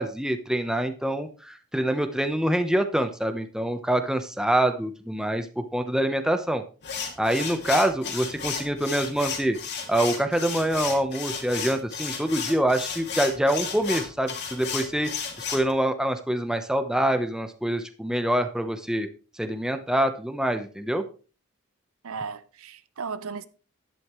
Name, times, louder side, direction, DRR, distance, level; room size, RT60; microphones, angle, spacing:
voice 1, 0.0-6.6 7.2-9.6 9.9-15.1 15.5-19.1 19.4-21.0, right 1 dB, 5° right, 0.8 m, -25 dB
sound 1, 6.8-15.7, left 6 dB, 50° left, 2.4 m, -33 dB
voice 2, 22.0-23.5, right 5 dB, 70° right, 0.7 m, -35 dB
11.5 x 11.0 x 3.1 m
head